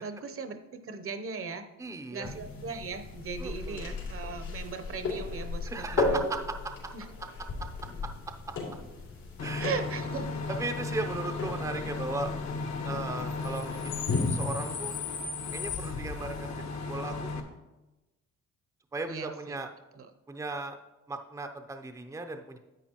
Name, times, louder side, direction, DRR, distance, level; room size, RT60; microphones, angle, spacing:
voice 1, 0.0-1.7 2.1-6.2 6.9-7.1 9.6-10.5 19.1-19.6 19.9-20.1, right 5 dB, 45° right, 9 dB, 0.9 m, -38 dB
voice 2, 1.8-2.3 3.4-4.1 5.7-6.9 8.0-8.1 9.4-9.7 10.5-12.3 12.8-14.9 15.5-17.4 18.9-19.7 20.3-20.8 21.1-22.6, right 3 dB, 10° right, 6 dB, 0.6 m, -37 dB
sound 1, 2.2-14.4, left 3 dB, 80° left, 2.8 m, -36 dB
Bus / Idling / Screech, 9.4-17.4, left 4 dB, 60° left, 1.2 m, -35 dB
10.0 x 8.2 x 3.0 m, 1.0 s
cardioid pair, 90°, 30 cm